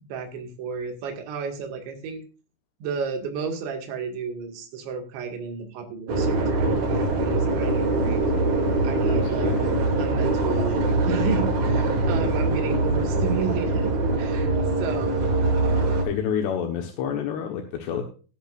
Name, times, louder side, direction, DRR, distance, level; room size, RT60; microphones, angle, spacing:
voice 1, 0.1-2.2 2.8-8.2 8.8-14.5 14.8-15.3, right 5 dB, 85° right, 3 dB, 4.4 m, -32 dB
sound 1, 6.1-16.0, right 2 dB, 50° right, 3.8 m, -23 dB
voice 2, 9.1-9.6 16.0-18.0, left 8 dB, 75° left, 3 dB, 3.4 m, -28 dB
18.0 x 10.5 x 2.6 m, 0.37 s
omnidirectional pair, 5.0 m